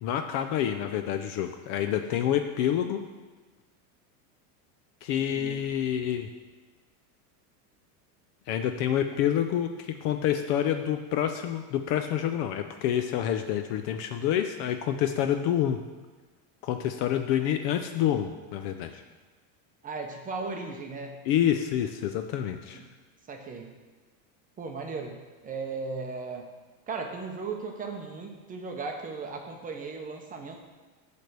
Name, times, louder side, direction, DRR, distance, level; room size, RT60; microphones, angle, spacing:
voice 1, 0.0-3.1 5.0-6.3 8.5-15.8 16.6-19.0 21.3-22.8, left 10 dB, 45° left, 7 dB, 0.4 m, -28 dB
voice 2, 5.2-5.6 19.8-21.2 22.7-22.9 23.3-23.7 24.6-26.5 26.9-30.6, right 4 dB, 20° right, 2 dB, 0.7 m, -37 dB
8.2 x 3.5 x 6.5 m, 1.3 s
supercardioid pair, 140°, 46 cm